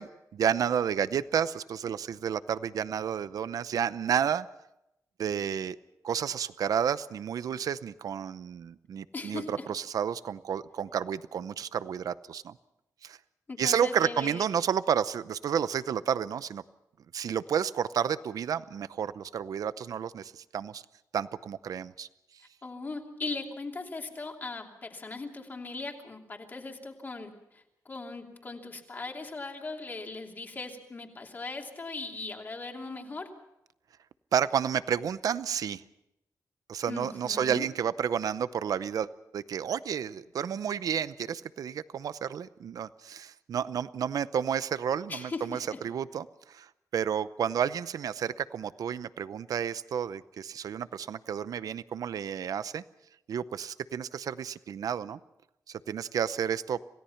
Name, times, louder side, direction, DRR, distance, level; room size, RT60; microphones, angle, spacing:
voice 1, 0.0-4.5 5.2-5.8 6.0-12.6 13.0-13.2 13.6-16.6 17.1-20.8 21.1-22.1 34.3-35.8 36.7-45.6 45.8-52.8 53.3-55.2 55.7-56.8, right 8 dB, 70° right, 15 dB, 0.7 m, -31 dB
voice 2, 9.1-9.5 13.5-14.4 22.6-33.3 36.9-37.7 45.1-45.8, left 3 dB, 30° left, 2 dB, 3.0 m, -39 dB
27.5 x 17.5 x 5.8 m, 0.84 s
wide cardioid pair, 155°, 6 cm